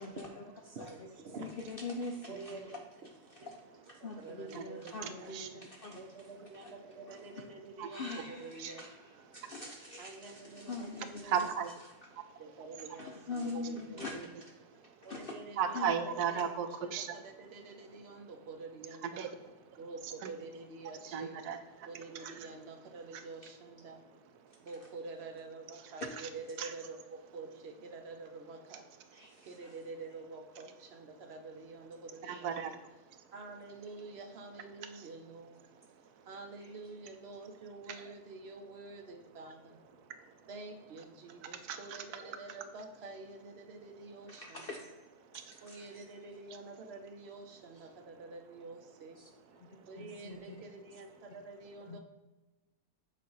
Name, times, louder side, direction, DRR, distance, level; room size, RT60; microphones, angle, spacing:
voice 1, 0.0-1.1 1.4-2.8 3.3-6.1 6.4-6.7 7.1-7.4 7.9-11.5 12.9-14.3 15.1-15.3 15.7-16.2 29.1-29.7 32.2-32.6 36.6-36.7 44.3-44.9 45.3-46.0 47.7-47.9 49.2-49.3 49.6-50.6 51.9-52.0, left 3 dB, 65° left, 2 dB, 0.5 m, -44 dB
voice 2, 0.8-1.7 2.3-2.8 3.4-3.5 4.0-5.4 5.9-8.8 10.0-11.5 12.4-14.0 15.0-16.0 16.3-19.3 19.8-21.4 21.9-24.0 24.6-28.9 29.4-32.8 33.3-35.7 36.3-39.8 40.5-44.7 45.6-49.2 49.9-52.0, right 3 dB, 60° right, 5 dB, 0.7 m, -48 dB
voice 3, 4.5-5.5 7.8-7.9 8.6-8.7 9.3-9.5 11.2-11.7 12.1-12.3 14.1-14.2 14.6-15.1 15.6-17.2 19.0-19.3 19.7-19.8 20.2-20.3 21.1-21.9 22.2-22.4 23.1-23.2 24.4-24.6 26.6-26.7 29.3-29.5 32.2-33.3 34.9-35.1 35.9-36.3 40.1-40.5 41.5-42.4 45.2-45.6 49.6-49.9, right 7 dB, 90° right, 8 dB, 1.2 m, -37 dB
7.3 x 2.5 x 5.4 m, 1.2 s
omnidirectional pair, 1.6 m